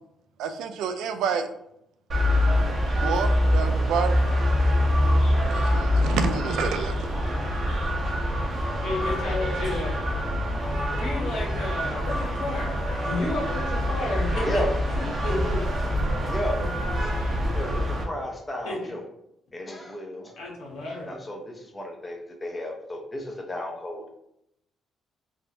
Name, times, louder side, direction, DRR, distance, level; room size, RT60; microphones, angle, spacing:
voice 1, 0.4-1.5 3.0-4.2 5.5-7.0, right 6 dB, 85° right, 8 dB, 0.4 m, -28 dB
sound 1, 2.1-18.0, left 1 dB, 50° right, 1.0 m, -25 dB
voice 2, 8.8-10.0 11.0-14.6 14.9-15.6 18.6-18.8 20.4-21.2, left 2 dB, 90° left, -3 dB, 1.2 m, -32 dB
voice 3, 16.2-16.6 17.4-19.0 19.5-20.4 21.1-24.1, left 1 dB, 20° left, 1 dB, 0.8 m, -34 dB
3.6 x 2.6 x 2.8 m, 0.77 s
cardioid pair, 90°, 0 cm